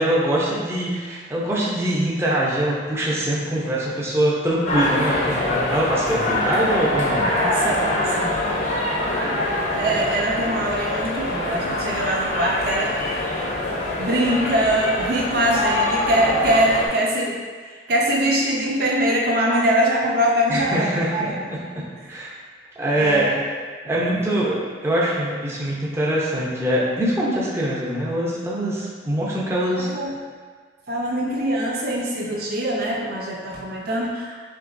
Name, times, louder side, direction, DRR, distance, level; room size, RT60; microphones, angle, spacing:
voice 1, 0.0-7.3 20.5-22.3 22.8-23.3 23.8-29.9, right 1 dB, 15° right, -6 dB, 0.7 m, -23 dB
sound 1, 4.7-16.9, left 1 dB, 40° left, 0.8 m, -24 dB
voice 2, 7.2-8.3 9.1-13.3 14.0-17.4 17.6-21.4 23.0-23.4 24.3-24.4 29.8-30.1 30.9-34.4, right 1 dB, 55° right, -2 dB, 0.5 m, -23 dB
5.8 x 3.0 x 2.6 m, 1.5 s
head